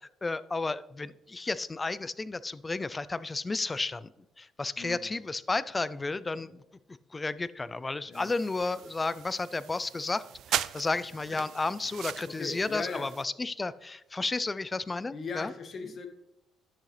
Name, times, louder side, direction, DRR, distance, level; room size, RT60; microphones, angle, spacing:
voice 1, 0.2-4.1 4.4-6.6 7.1-10.2 10.5-15.5, left 3 dB, 25° left, 17 dB, 0.4 m, -32 dB
voice 2, 4.8-5.2 6.4-6.5 8.0-8.3 11.3-11.4 12.3-13.1 15.1-16.1, left 4 dB, 45° left, 6 dB, 1.3 m, -39 dB
sound 1, 8.1-13.2, right 11 dB, 70° right, 0.3 m, -39 dB
10.0 x 6.4 x 3.3 m, 0.87 s
cardioid pair, 90°, 0 cm